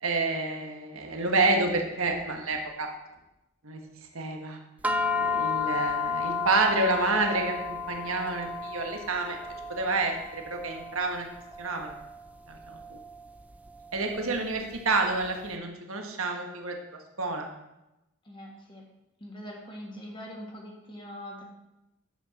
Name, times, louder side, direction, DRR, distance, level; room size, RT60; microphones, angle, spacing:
voice 1, 0.0-2.9 3.6-3.8 4.1-4.6 5.1-9.4 9.7-11.2 11.6-11.9 12.5-13.0 13.9-16.8 17.2-17.5, right 3 dB, 80° right, 3 dB, 1.4 m, -28 dB
sound 1, 4.8-15.3, left 4 dB, 5° right, 0.4 m, -33 dB
voice 2, 18.2-18.8 19.2-21.4, equal, 25° left, 0 dB, 1.7 m, -42 dB
9.9 x 7.2 x 4.2 m, 0.93 s
head